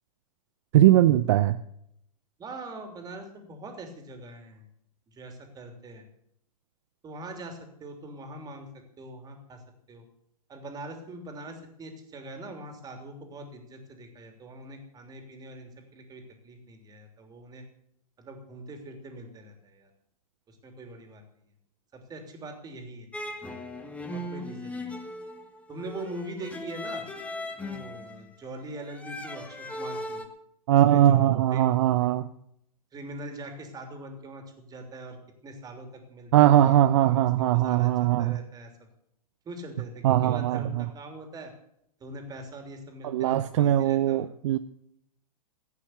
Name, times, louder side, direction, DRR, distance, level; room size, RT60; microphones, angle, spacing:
voice 1, 0.7-1.6 30.7-32.3 36.3-38.4 40.0-40.9 43.0-44.6, right 12 dB, 50° right, 12 dB, 0.6 m, -21 dB
voice 2, 2.4-4.6 5.1-6.0 7.0-8.7 9.0-9.6 9.9-10.0 10.5-17.6 18.2-19.9 20.5-21.2 21.9-23.1 24.1-25.0 25.7-27.0 27.5-30.2 30.9-31.7 32.9-35.2 35.4-38.7 39.4-41.5 42.0-44.3, right 1 dB, 20° right, 5 dB, 3.2 m, -42 dB
sound 1, 23.1-30.3, left 1 dB, 5° left, 1.6 m, -38 dB
16.0 x 8.7 x 8.0 m, 0.73 s
figure-of-eight pair, 110°, 19 cm